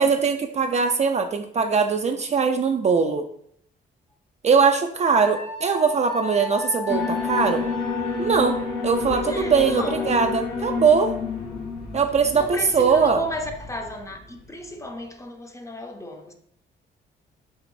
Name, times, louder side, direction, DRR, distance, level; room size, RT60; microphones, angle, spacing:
voice 1, 0.0-3.3 4.4-7.7 8.2-8.6 8.8-11.1 11.9-13.2, right 5 dB, 35° right, 0.4 m, -21 dB
Wind instrument woodwind instrument, 5.2-9.0, left 4 dB, 80° left, 1.3 m, -34 dB
Alarm, 6.9-14.0, left 4 dB, 50° left, 1.3 m, -29 dB
voice 2, 9.1-10.2 12.3-16.3, left 1 dB, 15° left, 0.6 m, -34 dB
4.6 x 2.9 x 2.6 m
cardioid pair, 90°, 20 cm